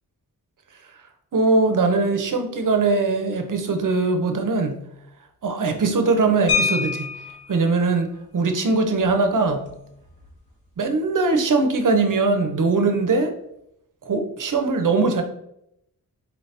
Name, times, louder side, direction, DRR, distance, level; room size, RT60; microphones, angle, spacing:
voice 1, 1.3-4.8 5.4-7.1 7.5-9.6 10.8-13.3 14.0-15.2, right 3 dB, 60° right, 6 dB, 0.6 m, -21 dB
sound 1, 6.5-7.6 9.0-9.1 9.5-9.7 10.0-10.3, left 5 dB, 80° left, 1.0 m, -25 dB
4.2 x 2.8 x 3.2 m, 0.77 s
wide cardioid pair, 105°, 36 cm